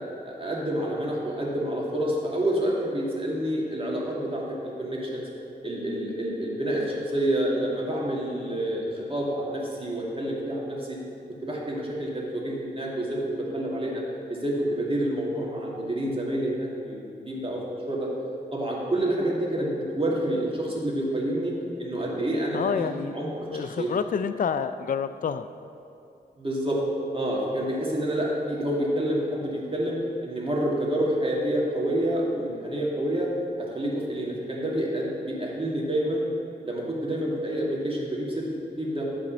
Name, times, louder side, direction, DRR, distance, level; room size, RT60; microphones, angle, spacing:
voice 1, 0.2-5.2 5.6-11.0 11.4-14.0 14.3-18.1 18.5-21.5 21.8-23.9 26.4-26.8 27.1-30.0 30.2-33.3 33.6-36.2 36.6-38.5 38.8-39.1, right 1 dB, 30° right, -4 dB, 2.2 m, -28 dB
voice 2, 22.5-23.2 23.5-25.5, left 7 dB, 50° left, 10 dB, 0.4 m, -28 dB
8.8 x 4.2 x 7.0 m, 2.6 s
cardioid pair, 45°, 18 cm